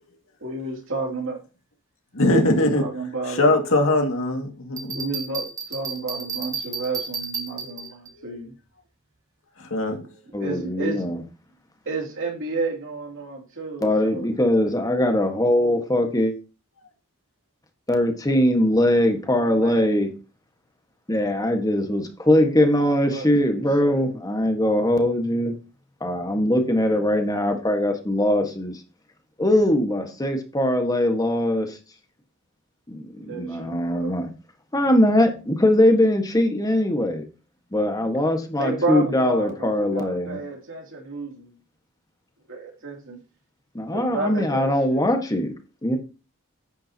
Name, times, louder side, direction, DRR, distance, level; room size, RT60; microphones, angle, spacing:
voice 1, 0.4-1.4 2.2-3.5 4.9-8.5 10.0-11.1 11.8-14.3 19.4-19.8 22.9-24.0 33.2-34.1 38.6-41.6 42.5-43.2 43.9-45.1, right 3 dB, 65° right, 2.8 m, -31 dB
voice 2, 2.1-2.8 3.3-5.1 6.7-6.8 7.6-7.7 9.6-10.0, left 1 dB, 65° left, 2.1 m, -21 dB
Bell, 4.8-8.1, right 5 dB, 15° right, 1.7 m, -32 dB
voice 3, 10.3-11.2 13.8-16.3 17.9-20.1 21.1-25.5 26.0-28.8 29.4-31.8 32.9-34.3 34.7-37.2 37.7-40.4 43.7-45.5 45.8-46.0, left 1 dB, 15° left, 1.5 m, -21 dB
10.5 x 8.9 x 2.9 m
head